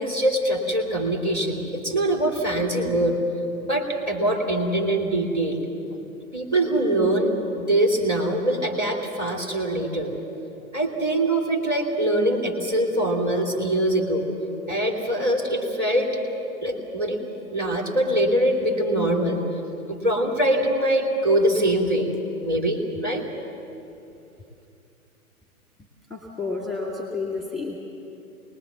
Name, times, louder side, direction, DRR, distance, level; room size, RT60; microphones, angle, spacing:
voice 1, 0.0-3.2 3.6-5.6 6.3-10.1 10.7-14.3 14.7-16.2 16.6-17.2 17.5-19.4 19.9-22.1 22.4-23.2, right 1 dB, 20° right, 0 dB, 2.8 m, -23 dB
voice 2, 26.1-27.8, left 3 dB, ahead, -2 dB, 2.5 m, -30 dB
26.5 x 20.0 x 7.3 m, 2.8 s
figure-of-eight pair, 115°, 43 cm